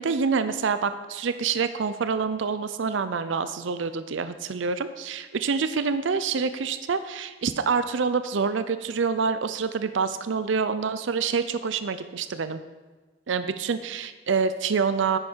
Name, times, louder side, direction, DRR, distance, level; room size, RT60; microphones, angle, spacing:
voice 1, 0.0-12.6 13.3-15.2, right 5 dB, 70° right, 11 dB, 0.5 m, -26 dB
9.7 x 9.6 x 4.5 m, 1.3 s
head